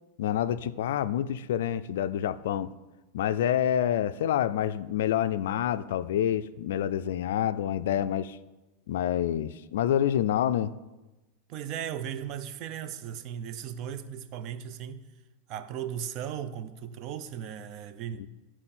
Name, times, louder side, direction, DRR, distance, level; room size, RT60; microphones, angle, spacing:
voice 1, 0.2-2.7 3.1-8.4 8.9-10.7 18.2-18.3, left 10 dB, 75° left, 0.3 m, -27 dB
voice 2, 11.5-15.0 15.5-18.3, right 9 dB, 45° right, 0.5 m, -37 dB
10.5 x 4.4 x 4.3 m
supercardioid pair, 135°, 0 cm